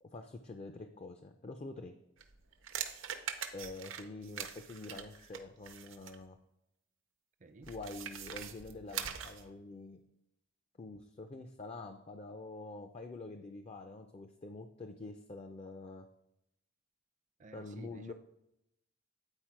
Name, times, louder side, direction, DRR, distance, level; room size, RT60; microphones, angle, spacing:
voice 1, 0.0-1.9 3.5-6.4 7.7-10.0 10.8-16.1 17.5-18.1, left 3 dB, 30° left, 6 dB, 0.4 m, -46 dB
sound 1, 2.2-6.2 7.6-9.5, right 8 dB, 75° right, 0.7 m, -43 dB
voice 2, 7.4-7.7 17.4-18.1, right 3 dB, 40° right, 6 dB, 0.5 m, -53 dB
8.9 x 4.3 x 4.6 m, 0.83 s
head